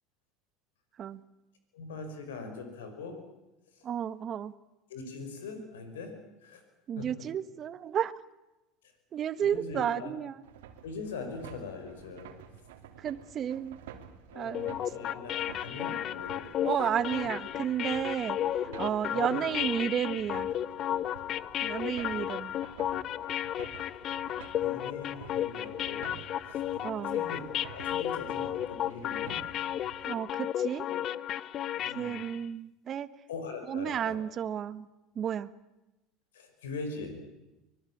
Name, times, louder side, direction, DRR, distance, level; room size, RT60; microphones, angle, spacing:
voice 1, 1.7-3.2 3.7-3.8 4.9-6.2 6.4-6.6 7.0-7.3 9.4-10.1 10.8-12.3 14.3-16.5 17.2-17.5 18.2-19.5 24.6-26.1 26.5-26.6 27.1-29.4 31.8-32.2 33.3-34.2 36.3-37.2, left 4 dB, 90° left, 7 dB, 5.2 m, -42 dB
voice 2, 3.8-4.5 6.9-8.1 9.1-10.3 13.0-13.8 14.3-14.7 16.6-18.4 18.8-20.5 21.6-22.5 26.8-27.2 30.0-30.9 31.9-33.1 33.7-34.9 35.1-35.5, right 9 dB, 45° right, 14 dB, 1.5 m, -32 dB
sound 1, 10.4-30.1, right 8 dB, 85° right, 2.8 m, -51 dB
sound 2, 14.5-32.4, left 11 dB, 50° left, 0.9 m, -33 dB
25.0 x 21.0 x 8.8 m, 0.98 s
hypercardioid pair, 85°, 0 cm